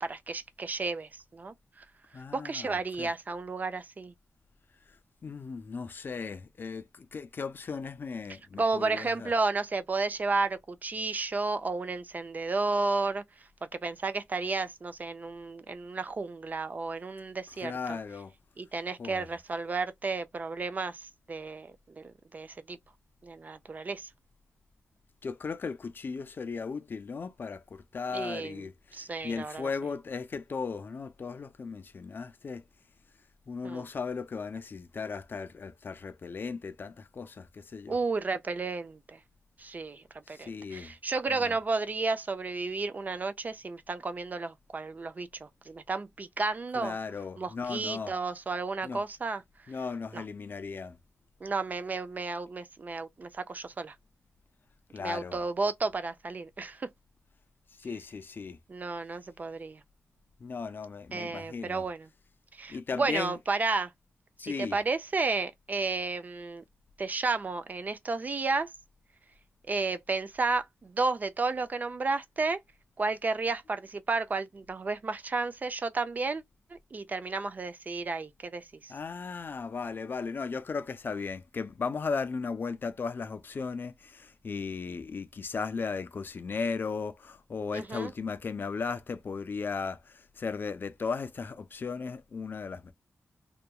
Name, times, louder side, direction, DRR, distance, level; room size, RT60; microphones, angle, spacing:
voice 1, 0.0-1.5 2.3-4.1 8.6-13.2 13.8-18.0 18.6-22.8 23.2-24.1 28.1-28.7 28.9-29.7 33.6-33.9 37.9-39.2 39.6-47.0 47.4-49.4 50.1-50.2 51.4-53.9 55.0-56.9 58.7-59.8 61.1-62.1 62.6-63.9 64.4-66.6 67.0-68.7 69.7-72.6 73.0-76.4 76.7-78.9 87.7-88.1, right 3 dB, 40° right, 0.3 m, -32 dB
voice 2, 2.1-3.1 5.2-9.3 17.6-18.3 19.0-19.2 25.2-32.6 33.5-38.0 40.3-40.9 41.3-41.6 46.8-48.1 48.8-49.0 49.7-51.0 54.9-55.4 57.8-58.6 60.4-61.8 62.7-63.4 64.4-64.8 78.9-92.9, left 5 dB, 50° left, 0.4 m, -36 dB
2.8 x 2.2 x 2.2 m
wide cardioid pair, 90°, 4 cm